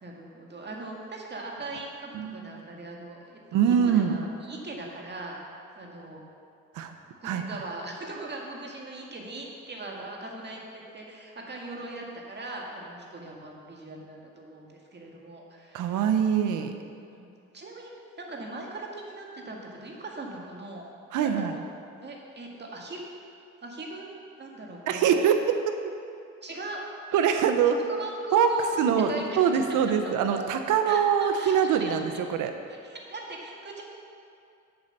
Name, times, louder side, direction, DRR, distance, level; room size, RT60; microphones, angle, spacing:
voice 1, 0.0-5.4 5.8-6.2 7.2-16.0 17.1-17.9 18.2-20.8 21.2-21.6 22.0-23.0 23.6-24.1 24.4-25.2 26.4-26.8 27.7-28.8 29.1-29.4 30.0-30.5 30.9-31.9 32.7-33.8, right 2 dB, 35° right, -1 dB, 1.9 m, -40 dB
voice 2, 2.1-2.5 3.5-4.2 6.7-6.9 7.2-7.6 15.7-16.7 21.1-21.5 24.9-25.4 25.7-25.8 27.1-27.7 28.3-28.5 28.8-32.5, right 8 dB, 90° right, 7 dB, 0.8 m, -24 dB
7.9 x 7.1 x 6.7 m, 2.4 s
cardioid pair, 90°, 30 cm